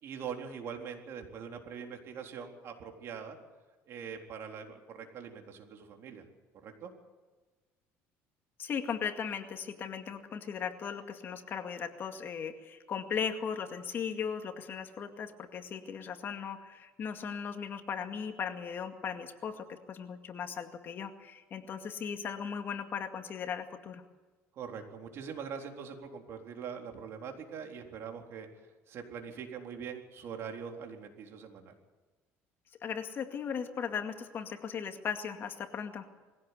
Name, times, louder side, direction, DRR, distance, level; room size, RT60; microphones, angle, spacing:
voice 1, 0.0-3.4 3.9-6.2 6.6-6.9 24.5-28.5 28.9-31.7, right 7 dB, 55° right, 3 dB, 3.9 m, -43 dB
voice 2, 8.6-24.0 32.8-36.1, left 7 dB, 45° left, 6 dB, 2.1 m, -37 dB
22.0 x 16.5 x 8.3 m, 1.3 s
cardioid pair, 120°, 5 cm